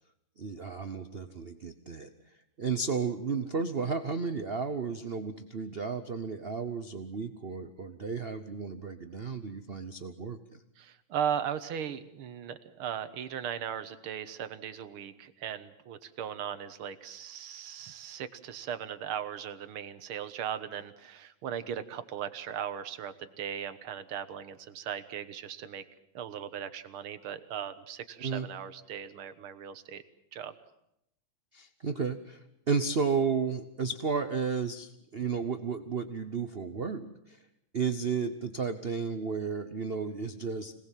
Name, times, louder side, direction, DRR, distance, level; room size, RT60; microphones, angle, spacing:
voice 1, 0.4-2.1 2.6-10.4 28.2-28.5 31.5-37.4 37.7-40.7, right 5 dB, 55° right, 9 dB, 0.6 m, -33 dB
voice 2, 10.8-25.8 26.1-30.0 30.3-30.5, right 9 dB, 75° right, 12 dB, 2.0 m, -38 dB
26.0 x 19.0 x 7.5 m, 0.80 s
omnidirectional pair, 2.4 m